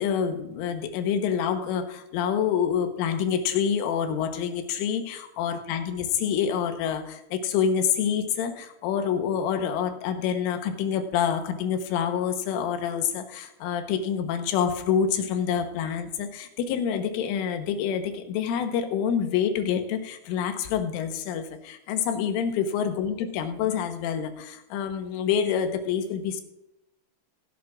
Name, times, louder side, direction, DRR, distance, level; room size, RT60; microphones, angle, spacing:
voice 1, 0.0-26.4, left 8 dB, 85° left, 7 dB, 3.5 m, -27 dB
18.0 x 10.5 x 2.5 m, 0.86 s
omnidirectional pair, 5.7 m